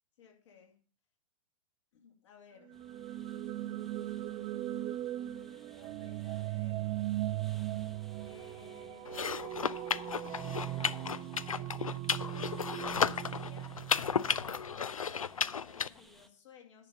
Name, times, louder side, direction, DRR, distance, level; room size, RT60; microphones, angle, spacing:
voice 1, 0.2-0.7 1.9-2.8 3.3-4.3 5.7-7.0 8.1-9.5 10.2-10.6 11.5-11.8 12.8-13.8 14.0-16.9, left 7 dB, 60° left, 2 dB, 2.7 m, -59 dB
sound 1, 2.6-14.5, right 14 dB, 25° right, 0.4 m, -39 dB
sound 2, 2.7-16.3, equal, ahead, 0.8 m, -60 dB
sound 3, 9.1-15.9, left 6 dB, 80° left, 0.4 m, -34 dB
10.5 x 5.5 x 6.9 m, 0.41 s
figure-of-eight pair, 100°, 17 cm